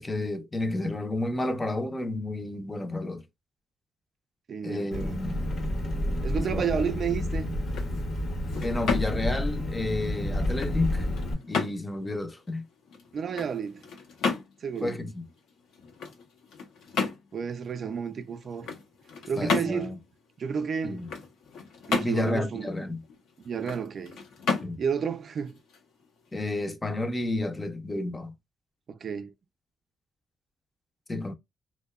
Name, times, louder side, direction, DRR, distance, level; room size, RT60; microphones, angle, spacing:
voice 1, 0.0-3.2 4.6-5.5 6.5-6.7 8.6-11.1 11.5-12.6 14.8-15.2 19.4-20.0 20.8-21.1 22.0-23.0 24.6-24.8 26.3-28.3 31.1-31.3, left 2 dB, 20° left, 0.5 m, -31 dB
voice 2, 4.5-5.2 6.2-7.5 13.1-13.8 14.6-15.0 17.3-18.7 19.3-20.0 20.4-21.0 21.9-22.7 23.4-24.2 24.8-25.6 28.9-29.3, right 7 dB, 50° right, 0.3 m, -31 dB
Engine, 4.9-11.3, left 1 dB, 60° left, 0.9 m, -30 dB
sound 1, 7.5-26.4, left 5 dB, 85° left, 0.7 m, -35 dB
2.7 x 2.0 x 2.2 m
cardioid pair, 100°, 0 cm